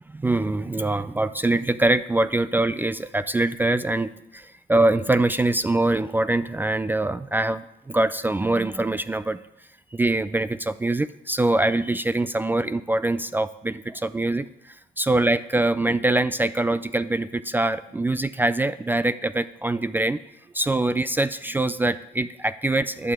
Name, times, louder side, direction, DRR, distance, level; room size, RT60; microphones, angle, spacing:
voice 1, 0.1-9.4 9.9-14.4 15.0-20.2 20.5-23.1, right 2 dB, 10° right, 14 dB, 0.4 m, -23 dB
11.5 x 7.4 x 7.3 m, 0.84 s
cardioid pair, 110°, 17 cm